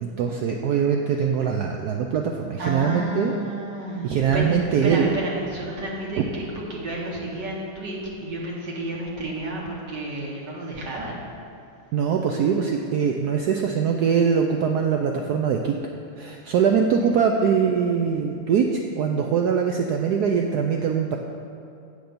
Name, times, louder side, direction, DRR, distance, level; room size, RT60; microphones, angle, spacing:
voice 1, 0.0-3.3 4.0-5.1 6.2-6.3 11.9-15.8 16.2-21.2, right 7 dB, 85° right, 2 dB, 0.8 m, -22 dB
voice 2, 2.6-4.1 4.3-6.4 6.7-11.2 17.0-17.2 17.9-18.1, right 1 dB, 60° right, -3 dB, 1.7 m, -31 dB
8.0 x 5.1 x 6.7 m, 2.6 s
omnidirectional pair, 2.2 m